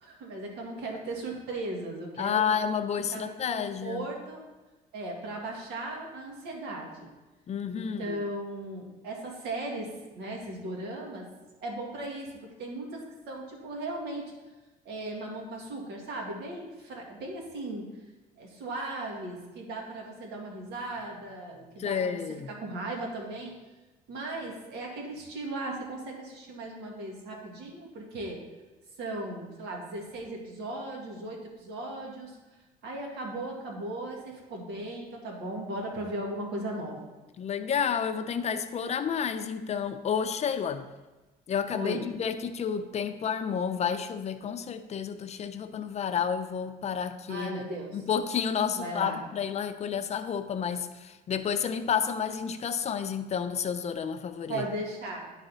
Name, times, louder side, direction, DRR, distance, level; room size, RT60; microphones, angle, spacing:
voice 1, 0.0-2.5 3.1-4.4 4.9-7.1 7.7-11.3 11.6-14.3 14.9-17.8 18.4-23.5 24.1-28.4 29.0-32.4 32.8-37.1 41.7-42.0 47.3-48.0 48.7-49.2 54.5-55.3, right 1 dB, 80° right, 0 dB, 2.0 m, -37 dB
voice 2, 2.2-4.1 7.5-8.2 21.8-22.5 37.4-40.9 41.5-47.6 47.9-54.6, left 7 dB, 40° left, 9 dB, 0.5 m, -30 dB
11.0 x 4.1 x 4.1 m, 1.2 s
cardioid pair, 110°, 17 cm